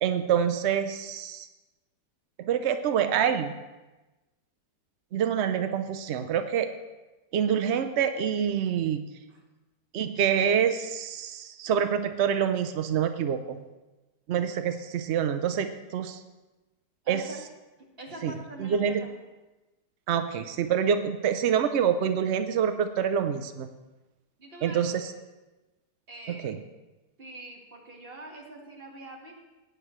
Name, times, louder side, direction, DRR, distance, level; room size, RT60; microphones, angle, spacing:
voice 1, 0.0-1.5 2.4-3.5 5.1-6.7 7.3-9.0 9.9-13.6 14.3-16.2 17.1-17.2 18.2-18.3 18.6-19.0 20.1-23.7 24.6-25.1 26.3-26.6, right 8 dB, 80° right, 8 dB, 0.6 m, -26 dB
voice 2, 17.0-17.4 17.8-19.1 24.4-25.1 26.1-26.5 27.2-29.3, right 2 dB, 35° right, -1 dB, 2.0 m, -44 dB
17.5 x 9.2 x 3.1 m, 1.1 s
omnidirectional pair, 1.9 m